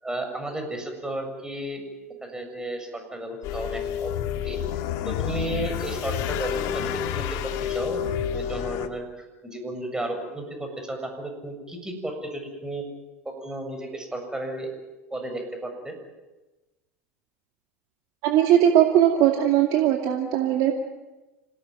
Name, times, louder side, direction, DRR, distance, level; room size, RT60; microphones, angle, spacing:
voice 1, 0.0-1.8 2.2-4.2 4.4-4.6 5.1-8.0 8.3-9.0 9.4-12.8 13.3-14.7 15.1-16.0, right 1 dB, 10° right, 4 dB, 7.2 m, -33 dB
sound 1, 3.4-8.9, left 9 dB, 60° left, 1.9 m, -29 dB
voice 2, 18.2-20.7, right 11 dB, 55° right, 3 dB, 2.4 m, -19 dB
27.0 x 18.0 x 9.3 m, 1.1 s
hypercardioid pair, 80°, 7 cm